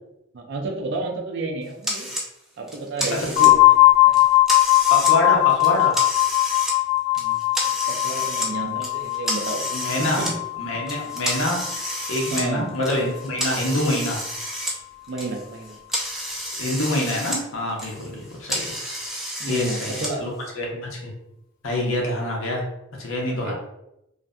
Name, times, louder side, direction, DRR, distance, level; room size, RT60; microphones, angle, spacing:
voice 1, 0.3-2.1 2.6-3.8 4.1-4.2 7.2-9.6 10.0-10.4 12.2-12.8 15.1-15.8 18.1-18.2 19.4-20.2 21.7-22.0 23.2-23.5, right 2 dB, 60° right, 2 dB, 0.4 m, -31 dB
sound 1, 1.8-2.3 2.7-3.7 4.1-5.1 5.5-6.7 7.1-8.5 8.8-10.3 10.9-14.8 15.0-17.4 17.7-20.1, equal, ahead, 0.4 m, -30 dB
sound 2, 3.4-13.0, left 18 dB, 45° left, 0.7 m, -20 dB
voice 2, 4.9-6.0 9.7-10.2 10.6-11.6 12.1-14.2 16.6-18.6 19.5-21.1 21.6-22.6 23.0-23.5, left 1 dB, 85° left, -1 dB, 0.7 m, -26 dB
2.5 x 2.5 x 2.2 m, 0.85 s
head